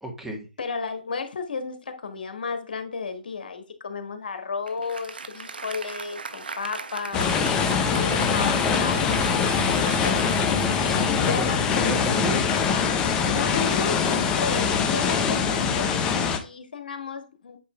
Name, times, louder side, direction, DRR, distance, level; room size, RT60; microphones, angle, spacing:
voice 1, 0.0-0.5 10.6-12.5, right 1 dB, 5° right, 1.4 m, -33 dB
voice 2, 0.6-10.2 11.2-12.1 13.2-17.6, left 5 dB, 70° left, 1.6 m, -33 dB
Applause, 4.7-12.3, right 4 dB, 90° right, 1.0 m, -37 dB
sound 1, 7.1-16.4, left 6 dB, 15° left, 0.8 m, -23 dB
8.7 x 3.1 x 5.0 m
hypercardioid pair, 155°, 5 cm